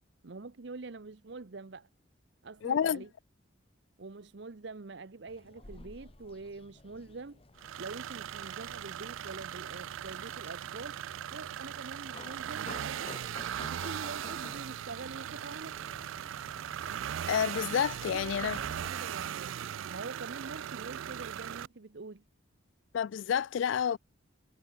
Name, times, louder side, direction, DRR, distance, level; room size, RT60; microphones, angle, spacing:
voice 1, 0.2-1.9 2.4-3.1 4.0-7.4 7.8-11.0 11.3-13.1 13.7-15.8 18.0-22.2, right 3 dB, 60° right, 0.8 m, -45 dB
voice 2, 2.6-3.0 17.3-18.6 22.9-24.0, left 8 dB, 70° left, 0.3 m, -29 dB
sound 1, 5.3-18.9, left 2 dB, 30° left, 1.2 m, -52 dB
sound 2, 7.6-21.7, right 10 dB, 80° right, 0.4 m, -39 dB
head